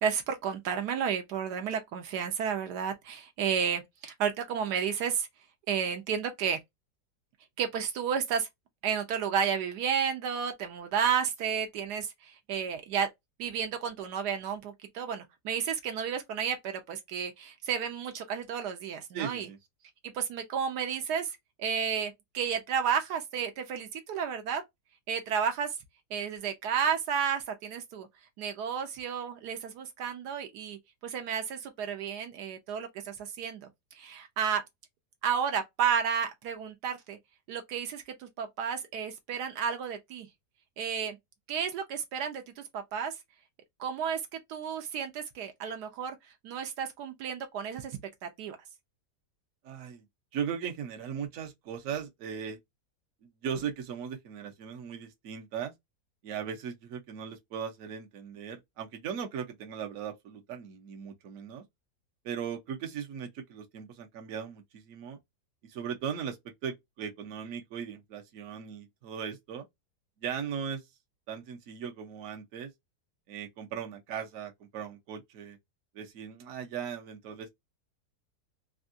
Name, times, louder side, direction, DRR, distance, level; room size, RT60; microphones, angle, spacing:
voice 1, 0.0-5.3 5.7-6.6 7.6-8.5 8.8-13.1 13.4-19.5 20.1-24.6 25.1-25.7 26.1-28.1 28.4-33.7 33.9-34.6 35.2-37.2 37.5-40.3 40.8-41.2 41.5-43.1 43.8-46.2 46.4-48.6, right 7 dB, 80° right, 1.2 m, -32 dB
voice 2, 19.1-19.6 49.6-50.1 50.3-52.6 53.2-55.7 56.2-61.6 62.2-65.2 65.6-69.7 70.2-70.8 71.3-72.7 73.3-75.6 75.9-77.5, right 7 dB, 60° right, 1.1 m, -38 dB
3.5 x 2.3 x 2.5 m
omnidirectional pair, 1.8 m